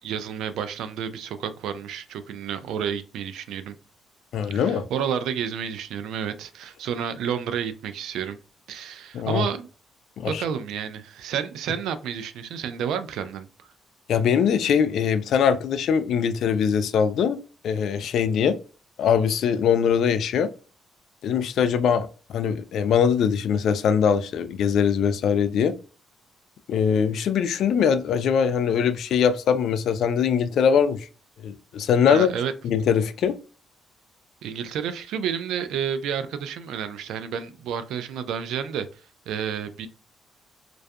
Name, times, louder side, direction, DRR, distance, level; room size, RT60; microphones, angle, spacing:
voice 1, 0.0-3.8 4.5-8.4 8.7-9.7 10.2-13.7 32.1-32.5 34.4-39.0 39.3-39.9, right 8 dB, 85° right, 0.3 m, -30 dB
voice 2, 4.3-4.8 9.1-9.5 10.2-10.4 14.1-17.4 17.6-18.6 19.0-20.5 21.2-25.7 26.7-31.1 31.4-32.3 32.6-33.4, left 7 dB, 70° left, 0.3 m, -22 dB
2.5 x 2.3 x 2.2 m
cardioid pair, 90°, 0 cm